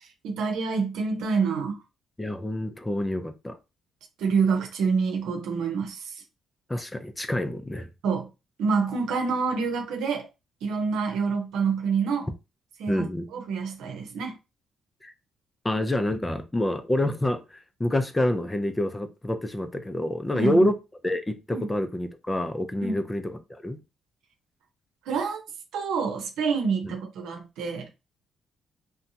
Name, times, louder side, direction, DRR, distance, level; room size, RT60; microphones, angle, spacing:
voice 1, 0.2-1.8 4.2-6.1 8.0-8.3 8.6-10.3 10.6-12.3 12.8-13.1 13.3-14.3 20.3-20.7 21.5-21.7 22.8-23.0 25.1-25.4 25.7-27.9, right 5 dB, 85° right, 0.8 m, -27 dB
voice 2, 2.2-3.6 6.7-7.9 12.9-13.3 15.0-15.1 15.6-17.4 17.8-20.8 21.0-23.8 26.8-26.9, left 1 dB, 15° left, 0.5 m, -27 dB
2.7 x 2.1 x 2.7 m
cardioid pair, 90°, 0 cm